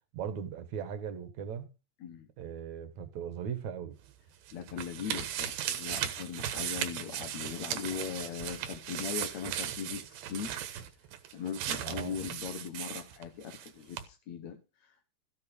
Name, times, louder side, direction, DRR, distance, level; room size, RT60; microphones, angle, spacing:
voice 1, 0.1-1.7 2.4-4.0 11.8-12.2, right 8 dB, 55° right, 2.4 m, -38 dB
sound 1, 4.0-13.7 13.9-14.0, right 10 dB, 90° right, 3.5 m, -37 dB
voice 2, 4.5-10.5 11.3-15.1, left 8 dB, 60° left, 2.0 m, -40 dB
15.0 x 8.0 x 5.3 m
omnidirectional pair, 4.7 m